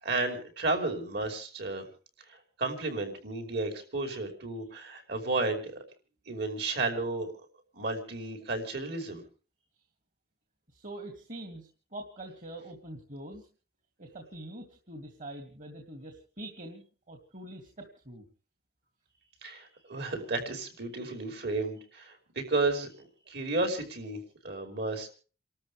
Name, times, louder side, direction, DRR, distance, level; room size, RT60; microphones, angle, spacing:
voice 1, 0.0-1.9 2.3-5.7 6.3-7.3 7.7-9.2 19.4-22.9 23.3-25.1, right 2 dB, 60° right, 5 dB, 5.4 m, -32 dB
voice 2, 10.7-13.5 14.0-18.2, right 1 dB, 45° right, 4 dB, 2.8 m, -44 dB
30.0 x 13.0 x 3.5 m, 0.39 s
head